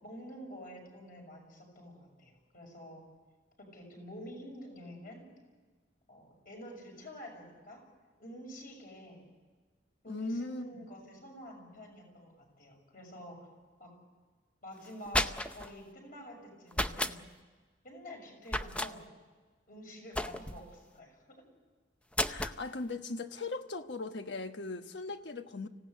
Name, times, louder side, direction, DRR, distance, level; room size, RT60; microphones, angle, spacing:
voice 1, 0.0-3.0 3.6-5.3 6.1-7.8 8.2-9.2 10.0-13.4 13.8-13.9 14.6-17.2 17.8-19.0 19.7-21.4, equal, 50° left, 6.4 m, -48 dB
voice 2, 10.1-10.9 22.3-25.7, left 3 dB, 65° left, 1.2 m, -39 dB
sound 1, 14.8-15.7 16.7-17.2 18.5-18.9 20.1-20.7 22.1-22.6, left 1 dB, 5° left, 0.7 m, -32 dB
25.5 x 17.0 x 8.1 m
head